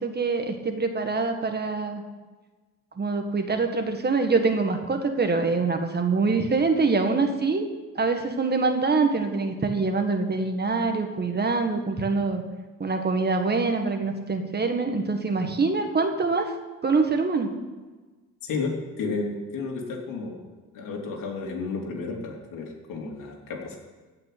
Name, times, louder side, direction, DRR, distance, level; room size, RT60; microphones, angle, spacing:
voice 1, 0.0-2.0 3.0-7.7 7.9-12.4 12.8-16.5 16.8-17.5, right 4 dB, 30° right, 5 dB, 1.7 m, -24 dB
voice 2, 18.4-20.5 20.7-23.8, left 4 dB, 70° left, 0 dB, 3.2 m, -32 dB
15.5 x 5.9 x 9.3 m, 1.3 s
cardioid pair, 105°, 33 cm